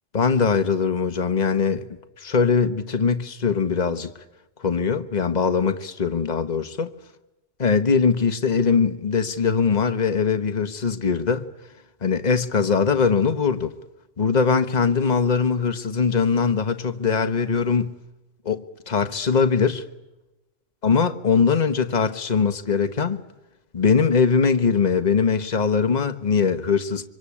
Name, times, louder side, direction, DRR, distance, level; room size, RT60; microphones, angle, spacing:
voice 1, 0.1-1.9 2.2-4.1 4.6-6.9 7.6-11.5 12.0-13.7 14.2-18.0 18.4-19.8 20.8-23.2 23.7-27.1, left 5 dB, 35° left, 1.4 m, -21 dB
26.5 x 25.0 x 8.6 m
omnidirectional pair, 1.2 m